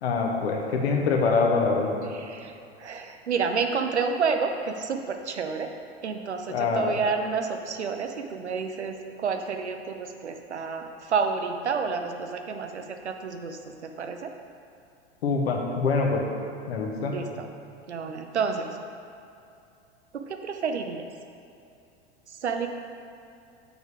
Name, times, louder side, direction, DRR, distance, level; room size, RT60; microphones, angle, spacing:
voice 1, 0.0-1.9 6.5-6.9 15.2-16.2 16.7-17.1, left 4 dB, 65° left, 1 dB, 1.1 m, -24 dB
voice 2, 2.1-2.5 2.8-5.7 6.0-14.3 17.1-17.5 17.9-18.8 20.1-21.0 22.3-22.7, right 5 dB, 80° right, 5 dB, 0.6 m, -30 dB
7.0 x 4.0 x 4.8 m, 2.7 s
figure-of-eight pair, 85°, 33 cm